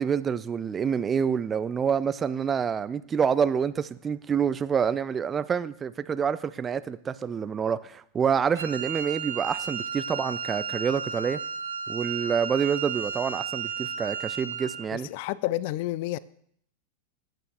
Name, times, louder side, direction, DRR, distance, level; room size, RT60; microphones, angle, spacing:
voice 1, 0.0-11.4 11.9-15.1, right 7 dB, 20° right, 15 dB, 0.4 m, -27 dB
Wind instrument woodwind instrument, 8.5-14.9, right 6 dB, 70° right, 1.1 m, -33 dB
voice 2, 14.9-16.2, left 16 dB, 50° left, 20 dB, 0.4 m, -30 dB
20.5 x 9.1 x 2.6 m, 0.65 s
figure-of-eight pair, 90°, 0 cm